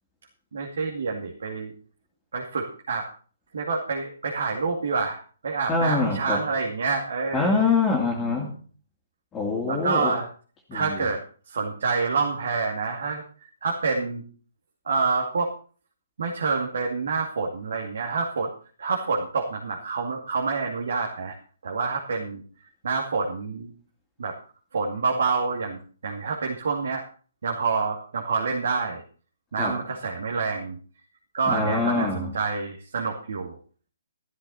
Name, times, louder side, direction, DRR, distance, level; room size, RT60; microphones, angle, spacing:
voice 1, 0.5-1.7 2.3-3.1 3.5-5.2 5.4-7.6 9.7-10.3 10.7-11.2 11.5-13.2 13.6-14.2 14.9-15.5 16.2-18.5 18.8-21.3 21.6-22.4 22.8-23.7 24.2-24.4 24.7-27.0 27.4-29.0 29.5-30.8 31.3-33.6, right 4 dB, 60° right, 0 dB, 2.4 m, -27 dB
voice 2, 5.7-6.4 7.3-8.6 9.3-10.2 10.7-11.0 29.6-29.8 31.5-32.4, left 4 dB, 15° left, -1 dB, 2.4 m, -25 dB
13.5 x 13.0 x 4.2 m, 0.42 s
figure-of-eight pair, 130°, 0 cm